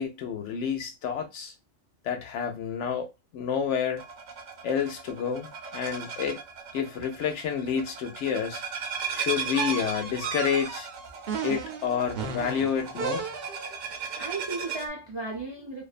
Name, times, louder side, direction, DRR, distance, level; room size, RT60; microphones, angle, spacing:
voice 1, 0.0-1.5 2.0-4.0 4.6-6.4 6.7-8.6 9.1-10.9 11.4-13.3, left 7 dB, 75° left, 0.9 m, -29 dB
sound 1, 4.0-14.9, right 6 dB, 85° right, 1.0 m, -37 dB
sound 2, 9.5-13.8, right 6 dB, 60° right, 0.7 m, -35 dB
voice 2, 13.9-15.8, right 3 dB, 45° right, 0.3 m, -35 dB
2.6 x 2.2 x 2.4 m
omnidirectional pair, 1.3 m